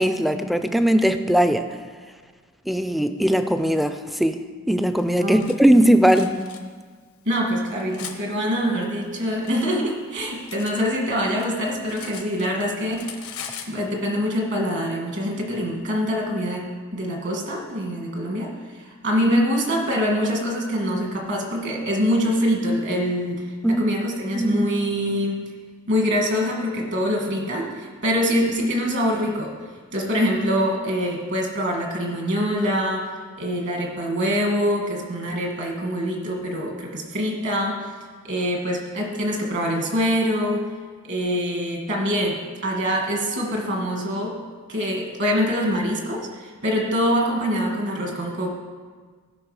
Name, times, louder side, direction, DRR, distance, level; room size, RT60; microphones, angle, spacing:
voice 1, 0.0-1.6 2.7-6.3 23.6-23.9 24.3-24.7, right 1 dB, ahead, 8 dB, 0.4 m, -19 dB
Cutlery silverware, 5.0-5.6 6.1-6.6 7.3-8.2 9.1-10.8 11.1-12.6 12.9-13.8, left 8 dB, 85° left, 1.1 m, -39 dB
voice 2, 7.3-13.1 13.7-23.5 23.8-25.4 25.9-29.6 29.9-33.1 33.4-37.8 38.2-40.7 41.1-44.4 44.7-48.5, equal, 55° right, 1 dB, 1.7 m, -24 dB
16.5 x 5.7 x 4.8 m, 1.5 s
head